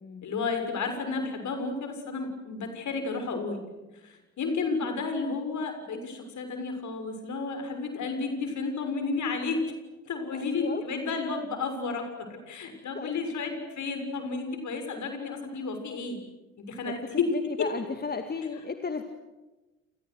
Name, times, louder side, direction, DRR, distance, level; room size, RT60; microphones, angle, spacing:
voice 1, 0.2-3.6 4.0-9.6 10.1-16.2 16.6-17.3 17.6-17.7, left 4 dB, 45° left, 6 dB, 7.0 m, -32 dB
voice 2, 10.3-10.8 12.9-13.2 16.8-16.9 17.3-19.0, left 4 dB, 25° left, 7 dB, 2.2 m, -34 dB
29.5 x 28.0 x 6.5 m, 1.1 s
figure-of-eight pair, 55°, 41 cm